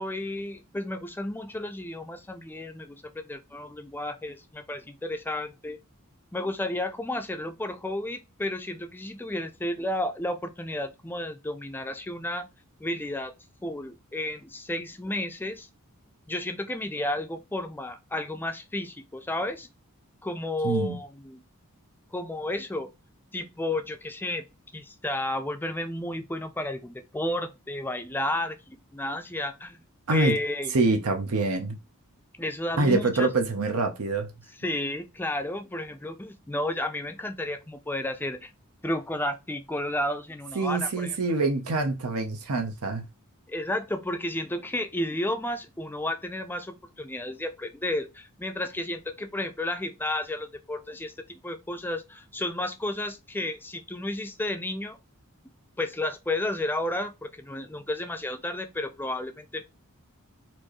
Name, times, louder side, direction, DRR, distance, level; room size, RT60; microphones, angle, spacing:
voice 1, 0.0-5.8 6.3-12.5 12.8-13.3 13.6-15.7 16.3-19.7 20.2-21.4 22.1-22.9 23.3-24.4 24.7-29.8 30.1-30.7 32.4-33.3 34.6-38.5 38.8-41.2 43.5-55.0 55.8-59.6, left 1 dB, 10° left, 0.5 m, -32 dB
voice 2, 20.6-21.0 30.1-30.3 30.7-31.8 32.8-34.3 40.5-43.0, right 3 dB, 80° right, 0.8 m, -25 dB
4.3 x 2.7 x 3.0 m
head